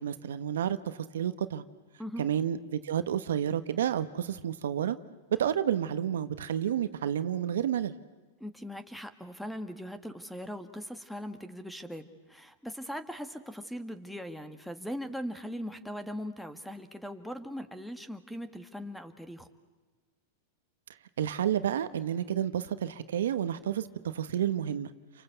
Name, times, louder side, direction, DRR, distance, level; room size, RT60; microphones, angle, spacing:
voice 1, 0.0-1.6 2.2-5.0 5.4-7.9 21.2-24.9, right 9 dB, 85° right, 11 dB, 1.2 m, -30 dB
voice 2, 8.4-19.5, equal, ahead, 10 dB, 1.8 m, -40 dB
30.0 x 24.5 x 8.1 m, 1.3 s
hypercardioid pair, 130°, 0 cm